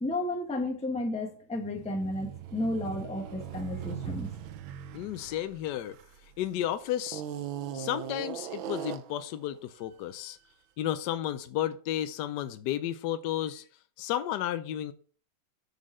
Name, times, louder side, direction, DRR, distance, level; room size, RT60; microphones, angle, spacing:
voice 1, 0.0-4.3, left 1 dB, 5° left, 0.6 m, -32 dB
sound 1, 1.6-6.4 7.1-9.3, right 9 dB, 90° right, 1.5 m, -39 dB
voice 2, 4.9-6.0 6.2-7.2 7.7-10.4 10.8-13.6 14.0-14.9, left 12 dB, 75° left, 1.0 m, -32 dB
8.3 x 4.1 x 4.9 m
omnidirectional pair, 2.1 m